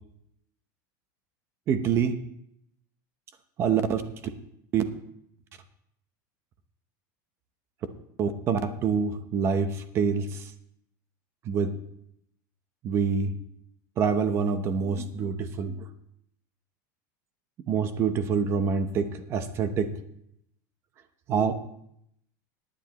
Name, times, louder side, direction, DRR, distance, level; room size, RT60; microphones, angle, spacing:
voice 1, 1.7-2.1 3.6-4.0 4.7-4.8 8.2-10.4 11.5-11.7 12.8-13.4 14.0-15.9 17.7-19.9 21.3-21.6, right 6 dB, 25° right, 10 dB, 0.8 m, -26 dB
17.5 x 9.9 x 3.0 m, 0.74 s
supercardioid pair, 175°, 10 cm